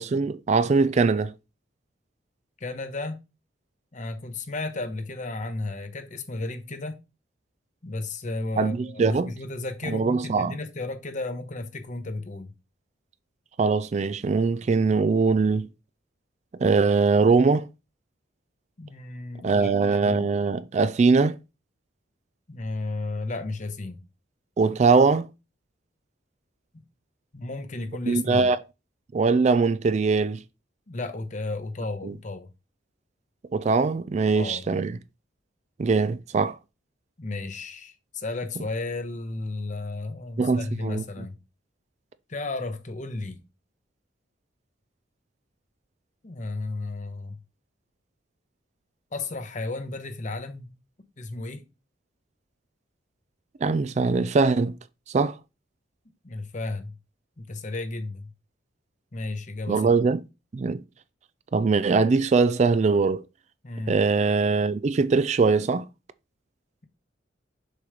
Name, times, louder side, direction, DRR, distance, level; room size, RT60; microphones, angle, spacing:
voice 1, 0.0-1.3 8.6-9.3 9.9-10.5 13.6-15.7 16.6-17.7 19.4-21.4 24.6-25.3 28.1-28.6 29.1-30.4 32.0-32.1 33.5-34.9 35.8-36.6 40.4-41.0 53.6-54.8 55.1-55.4 59.7-60.2 60.5-60.8 61.5-63.2 63.9-65.9, right 4 dB, 35° right, 0.3 m, -22 dB
voice 2, 2.6-3.2 3.9-7.0 7.8-12.5 18.8-20.3 22.5-24.0 26.7-26.8 27.3-28.5 30.9-32.5 34.3-34.6 37.2-41.4 42.3-43.4 46.2-47.4 49.1-50.7 51.2-51.6 56.2-57.0 57.4-58.3 59.1-59.9 63.6-64.0, left 2 dB, 40° left, 0.9 m, -33 dB
6.7 x 3.1 x 4.9 m
head